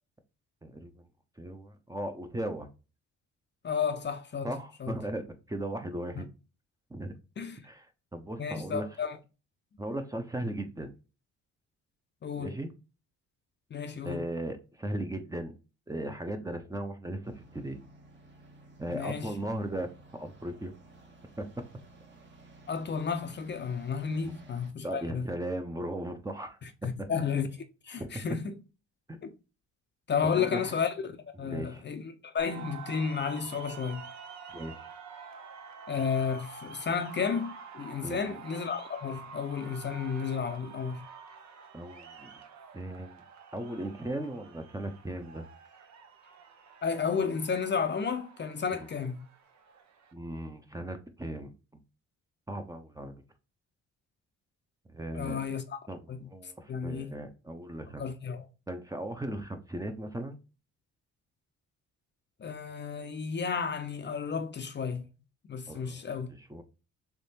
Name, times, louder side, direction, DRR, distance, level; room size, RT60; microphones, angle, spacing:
voice 1, 0.6-1.0 1.4-2.7 4.4-6.3 6.9-7.1 7.6-7.9 8.1-8.8 9.8-10.9 12.4-12.7 14.0-15.5 15.9-17.8 18.8-19.9 20.2-20.7 21.4-21.5 24.2-24.3 24.8-26.6 27.0-27.1 28.0-28.1 29.1-29.2 30.2-30.7 31.4-31.8 34.5-34.9 38.0-38.2 41.7-42.3 42.7-43.2 43.5-45.5 50.1-51.5 52.5-53.1 54.9-55.4 55.9-58.1 58.7-60.4 65.7-66.0 66.5-66.6, right 1 dB, 10° right, 0.7 m, -37 dB
voice 2, 3.6-4.5 4.8-5.0 6.1-6.2 7.4-7.6 8.4-9.2 12.2-12.5 13.7-14.3 18.9-19.3 22.7-25.3 26.6-27.5 27.8-28.6 29.2-29.3 30.1-31.1 31.4-34.1 35.9-41.0 46.8-49.2 55.1-55.8 56.1-56.3 56.7-57.2 58.0-58.4 62.4-65.0 65.5-66.3, left 6 dB, 35° left, 0.6 m, -32 dB
sound 1, 17.2-24.7, right 2 dB, 35° right, 1.1 m, -55 dB
sound 2, 32.4-50.1, right 5 dB, 65° right, 0.8 m, -48 dB
3.5 x 3.1 x 2.7 m
cardioid pair, 90°, 30 cm